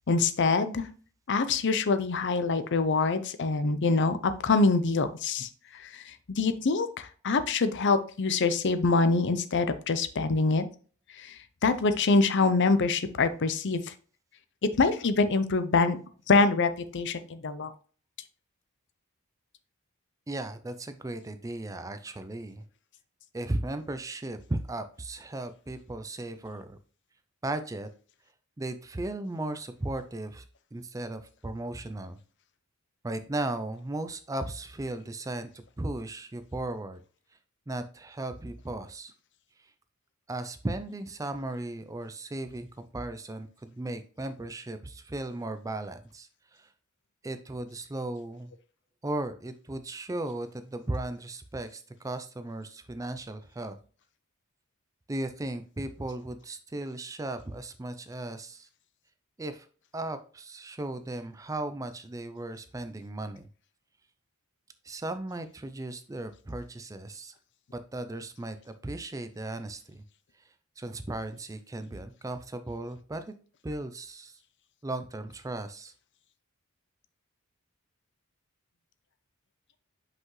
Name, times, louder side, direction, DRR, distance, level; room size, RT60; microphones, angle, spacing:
voice 1, 0.1-0.9 1.3-10.7 11.1-13.9 14.6-16.0 16.3-17.7, left 3 dB, 55° left, 12 dB, 0.6 m, -25 dB
voice 2, 20.3-22.6 23.3-26.8 27.4-27.9 28.6-30.4 30.7-32.2 33.0-37.0 37.7-39.1 39.6-39.7 40.3-46.7 47.2-48.5 49.0-53.8 55.1-58.7 59.4-59.7 59.9-63.5 64.8-67.3 67.7-70.0 70.4-70.5 70.8-73.2 73.6-74.4 74.8-75.9, right 2 dB, 15° right, 10 dB, 0.4 m, -36 dB
5.8 x 5.3 x 3.1 m, 0.39 s
head